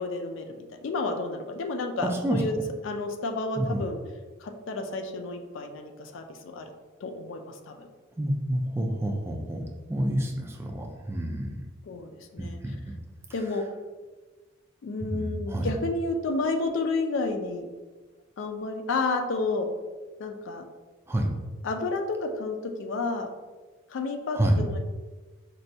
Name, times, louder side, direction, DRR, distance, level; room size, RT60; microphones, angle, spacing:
voice 1, 0.0-2.5 2.8-4.0 4.4-6.7 7.0-7.9 9.6-9.7 11.9-12.6 13.3-13.6 14.8-17.7 18.4-19.7 20.2-20.6 21.6-23.3 23.9-24.8, left 3 dB, 70° left, 4 dB, 0.4 m, -31 dB
voice 2, 2.0-2.4 3.6-3.8 8.2-11.6 12.4-12.8 15.0-15.7 21.1-21.3 24.3-24.6, right 1 dB, 10° right, 1 dB, 0.3 m, -28 dB
4.1 x 2.2 x 2.7 m, 1.3 s
head